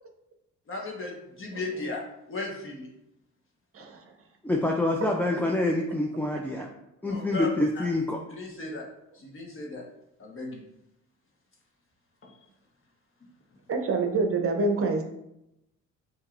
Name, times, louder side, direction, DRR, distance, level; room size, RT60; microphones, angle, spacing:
voice 1, 0.7-2.0 2.3-2.9 7.0-7.5 7.7-7.8 8.3-8.8 9.1-9.8 10.2-10.6 12.2-12.3, left 2 dB, 45° left, -1 dB, 1.3 m, -36 dB
voice 2, 4.4-6.7 7.0-8.2, left 2 dB, 5° left, 0 dB, 0.4 m, -26 dB
voice 3, 13.7-15.0, right 3 dB, 50° right, 4 dB, 0.8 m, -26 dB
7.3 x 2.9 x 2.5 m, 0.84 s
cardioid pair, 90°, 30 cm